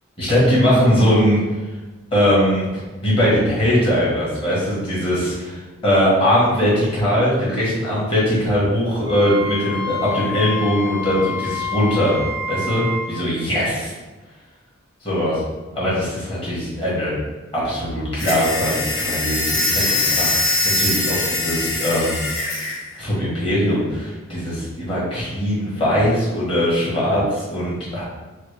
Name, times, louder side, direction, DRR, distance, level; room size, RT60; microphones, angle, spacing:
voice 1, 0.2-1.7 2.1-12.2 12.5-13.9 15.0-15.4 15.7-17.2 17.5-22.2 23.0-28.0, equal, 25° left, -8 dB, 1.2 m, -20 dB
Wind instrument woodwind instrument, 9.0-13.1, left 3 dB, 20° right, 0.3 m, -28 dB
sound 1, 18.2-22.8, left 2 dB, 60° left, 1.1 m, -22 dB
3.8 x 2.1 x 3.3 m, 1.2 s
head